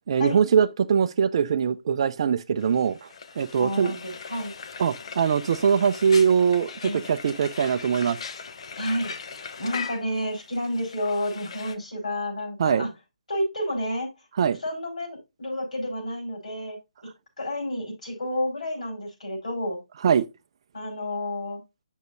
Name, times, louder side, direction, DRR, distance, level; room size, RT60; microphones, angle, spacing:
voice 1, 0.1-3.1 3.4-3.9 4.8-8.2 12.6-12.9 14.4-14.6 20.0-20.3, right 7 dB, 45° right, 0.4 m, -22 dB
Frying (food), 2.6-11.8, left 5 dB, 50° left, 0.8 m, -40 dB
voice 2, 3.6-4.5 6.8-7.1 8.8-9.1 9.6-12.9 13.3-14.1 14.6-16.8 17.0-17.1 17.4-19.8 20.7-21.6, left 1 dB, 70° left, 4.4 m, -30 dB
7.8 x 6.2 x 2.6 m
figure-of-eight pair, 140°, 4 cm